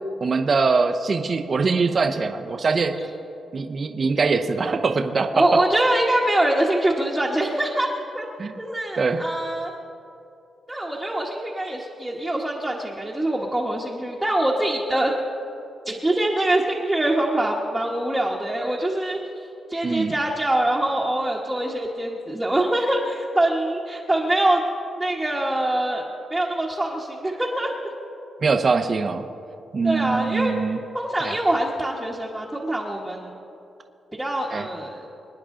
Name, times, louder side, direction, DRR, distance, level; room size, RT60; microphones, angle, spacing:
voice 1, 0.2-2.9 3.5-5.4 8.4-8.5 9.0-9.2 19.8-20.1 28.4-29.2 29.7-30.8 31.2-31.4 34.5-34.7, right 4 dB, 40° right, 6 dB, 0.7 m, -22 dB
voice 2, 5.3-8.3 8.6-9.7 10.7-15.1 15.8-19.2 19.7-24.6 25.0-26.0 26.3-27.9 29.8-30.6 30.9-33.4 34.1-35.1, right 1 dB, 5° right, -4 dB, 1.2 m, -24 dB
25.5 x 10.0 x 3.8 m, 2.7 s
wide cardioid pair, 135°, 0 cm